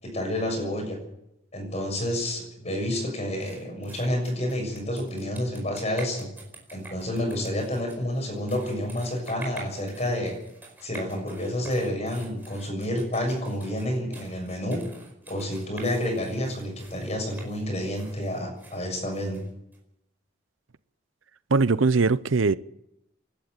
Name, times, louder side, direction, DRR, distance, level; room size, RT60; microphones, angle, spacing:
voice 1, 0.0-1.0 1.5-6.3 6.7-10.4 10.8-14.8 15.3-19.4, left 1 dB, 35° left, 6.8 m, -29 dB
sound 1, 3.4-19.8, right 3 dB, 10° right, 5.0 m, -47 dB
voice 2, 21.5-22.6, right 4 dB, 90° right, 0.7 m, -21 dB
26.5 x 12.0 x 9.0 m
head